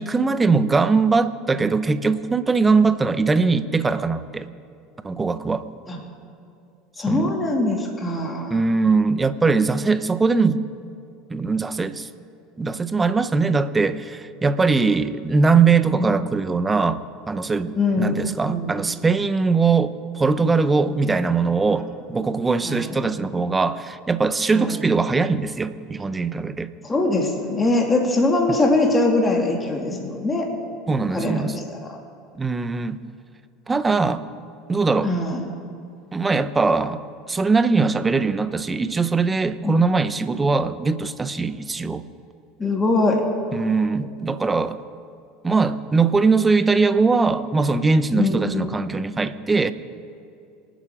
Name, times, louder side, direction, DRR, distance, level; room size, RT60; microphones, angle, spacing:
voice 1, 0.0-4.5 5.0-5.6 7.1-7.4 8.5-10.6 11.3-12.1 12.6-26.7 30.9-31.6 32.3-33.0 33.7-34.2 34.7-35.1 36.1-37.0 37.3-42.0 43.5-44.8 45.4-49.7, right 4 dB, 20° right, 13 dB, 0.9 m, -21 dB
voice 2, 7.0-8.6 15.9-16.1 17.7-18.7 22.6-23.0 24.5-24.8 26.8-30.5 31.1-32.0 35.0-35.5 39.6-39.9 42.6-43.2 48.1-48.6, left 2 dB, 20° left, 1 dB, 2.7 m, -22 dB
26.5 x 9.2 x 5.0 m, 2.5 s
hypercardioid pair, 80°, 0 cm